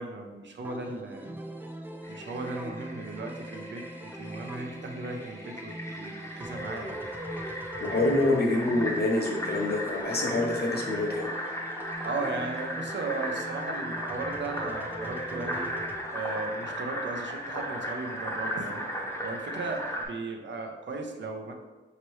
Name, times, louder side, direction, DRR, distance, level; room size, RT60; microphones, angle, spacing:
voice 1, 0.0-1.4 2.1-7.0 12.0-15.7 16.1-18.9 19.2-21.5, right 3 dB, 70° right, 3 dB, 0.6 m, -36 dB
sound 1, 0.6-16.0, right 1 dB, 10° right, 0.4 m, -41 dB
Fill (with liquid), 2.0-20.0, equal, 15° left, 0.7 m, -37 dB
voice 2, 7.8-11.3, left 2 dB, 55° left, 0 dB, 0.8 m, -26 dB
5.4 x 2.9 x 3.1 m, 1.2 s
wide cardioid pair, 135°, 19 cm